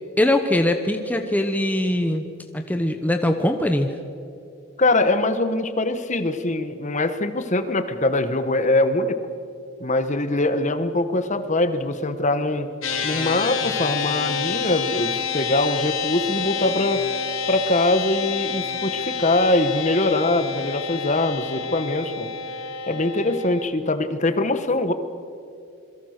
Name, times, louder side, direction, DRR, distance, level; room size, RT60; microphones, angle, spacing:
voice 1, 0.2-2.3 2.5-3.9, left 1 dB, 10° left, 6 dB, 1.0 m, -21 dB
voice 2, 4.8-9.2 9.8-12.7 13.0-17.1 17.5-22.3 22.9-24.9, left 2 dB, 35° left, 10 dB, 1.3 m, -22 dB
sound 1, 12.8-23.6, left 6 dB, 80° left, 2.6 m, -28 dB
27.0 x 22.5 x 6.6 m, 2.5 s
head